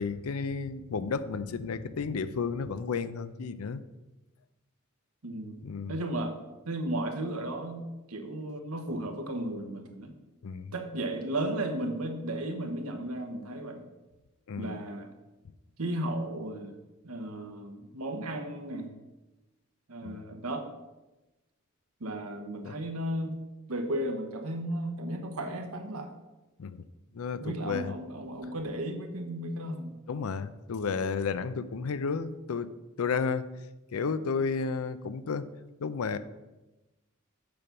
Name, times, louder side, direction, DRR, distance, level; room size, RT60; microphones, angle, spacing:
voice 1, 0.0-3.8 5.6-6.0 10.4-10.7 14.5-14.8 20.0-20.2 22.6-22.8 26.6-26.8 27.1-27.9 30.1-32.7 33.0-33.5 33.9-35.5 35.8-36.2, left 5 dB, 80° left, 14 dB, 0.5 m, -32 dB
voice 2, 5.2-5.6 5.9-6.4 6.7-10.1 10.7-13.8 14.6-15.1 15.8-16.8 17.0-18.9 19.9-20.7 22.0-23.4 23.7-26.1 27.4-29.9, right 1 dB, 85° right, 5 dB, 1.1 m, -34 dB
7.0 x 5.3 x 5.8 m, 1.1 s
head